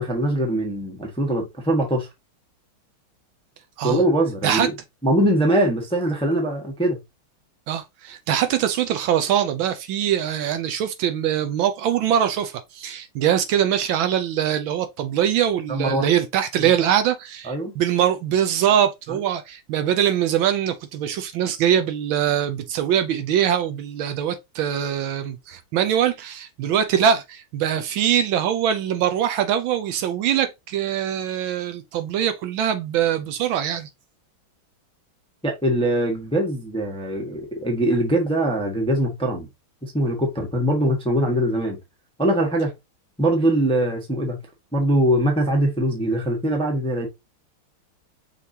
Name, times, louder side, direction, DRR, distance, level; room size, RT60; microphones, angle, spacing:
voice 1, 0.0-2.1 3.8-4.7 5.0-7.0 15.7-16.1 16.6-16.7 17.5-17.7 19.1-19.2 35.4-39.5 39.8-41.8 42.2-42.7 43.2-44.4 44.7-47.1, right 1 dB, 5° left, 0.8 m, -22 dB
voice 2, 7.7-33.9, right 9 dB, 75° right, 1.3 m, -22 dB
5.8 x 3.2 x 2.7 m
omnidirectional pair, 2.3 m